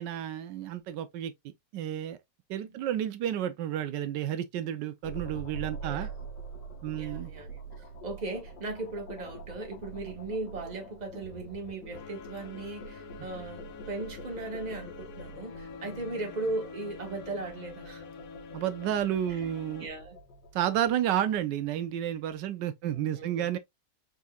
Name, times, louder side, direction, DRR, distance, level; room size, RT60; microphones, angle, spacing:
voice 1, 0.0-1.3 1.7-2.2 2.5-6.1 6.8-7.3 18.5-19.9 20.5-23.6, right 10 dB, 85° right, 1.3 m, -31 dB
sound 1, 5.0-22.3, right 2 dB, 85° left, 1.8 m, -45 dB
voice 2, 5.8-6.1 6.9-7.6 8.0-18.0 19.3-20.2 22.8-23.5, right 2 dB, 25° right, 1.4 m, -38 dB
sound 2, 11.9-19.9, left 5 dB, 65° left, 1.0 m, -47 dB
4.8 x 4.1 x 2.2 m
omnidirectional pair, 1.9 m